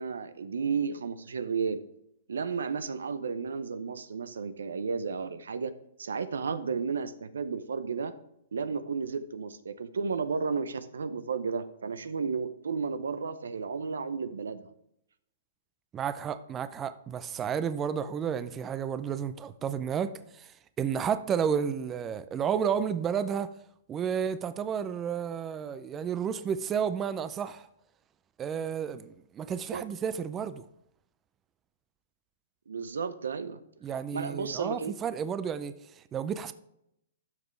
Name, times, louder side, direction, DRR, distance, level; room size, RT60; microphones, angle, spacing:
voice 1, 0.0-1.8 2.3-5.7 6.0-8.1 8.5-14.7 29.7-29.8 32.7-33.6 34.1-34.9, right 5 dB, 85° right, 0.7 m, -33 dB
voice 2, 15.9-20.5 20.8-23.5 23.9-27.7 28.4-30.6 33.8-36.5, right 7 dB, 20° right, 0.4 m, -31 dB
12.0 x 6.0 x 3.2 m
hypercardioid pair, 135°, 0 cm